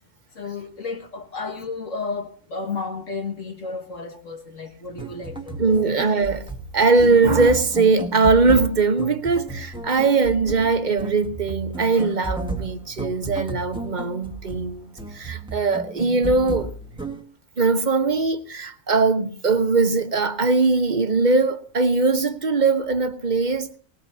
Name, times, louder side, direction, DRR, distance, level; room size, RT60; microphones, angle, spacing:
voice 1, 0.4-5.8, left 4 dB, 75° left, 2.5 m, -32 dB
sound 1, 4.9-17.2, right 3 dB, 5° right, 1.4 m, -33 dB
voice 2, 5.6-6.5 6.7-16.7 17.6-23.7, right 4 dB, 40° right, 1.2 m, -20 dB
19.5 x 19.5 x 2.8 m
omnidirectional pair, 1.3 m